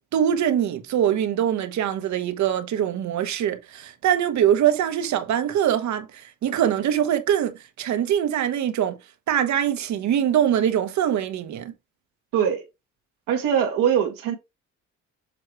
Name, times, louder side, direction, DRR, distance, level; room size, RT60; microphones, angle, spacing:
voice 1, 0.1-9.0 9.3-11.7, right 10 dB, 60° right, 1.2 m, -23 dB
voice 2, 12.3-12.6 13.3-14.4, right 8 dB, 85° right, 1.8 m, -22 dB
7.2 x 3.1 x 4.7 m
cardioid pair, 115°, 32 cm